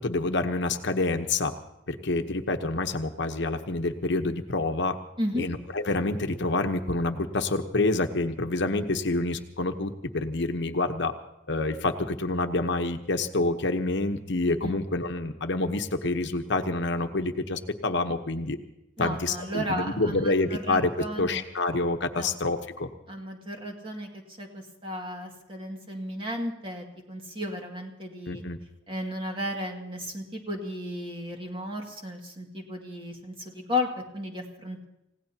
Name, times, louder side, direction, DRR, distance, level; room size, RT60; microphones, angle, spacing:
voice 1, 0.0-1.5 1.9-5.0 5.4-11.1 11.5-18.6 19.0-20.9 21.2-22.9 28.3-28.6, left 2 dB, 65° left, 7 dB, 1.0 m, -27 dB
voice 2, 5.2-5.5 14.6-14.8 19.0-21.4 22.2-22.4 23.1-28.4 28.9-34.8, left 1 dB, 30° right, 1 dB, 2.2 m, -34 dB
29.0 x 17.0 x 2.9 m, 0.90 s
head